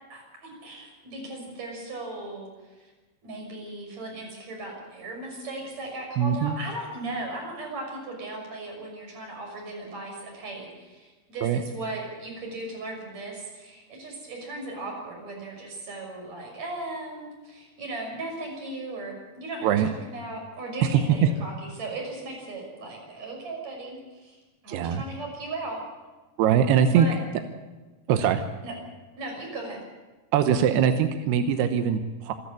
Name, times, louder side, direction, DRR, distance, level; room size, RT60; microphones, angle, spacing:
voice 1, 0.1-2.5 2.8-2.9 3.2-25.8 26.9-27.2 28.6-28.7 29.2-29.8, right 2 dB, 40° right, 0 dB, 7.5 m, -37 dB
voice 2, 6.2-6.6 11.4-11.6 19.6-19.9 20.8-21.3 24.7-25.0 26.4-27.1 28.1-28.4 30.3-32.3, right 8 dB, 90° right, 8 dB, 3.0 m, -22 dB
27.0 x 13.5 x 8.4 m, 1.2 s
omnidirectional pair, 4.6 m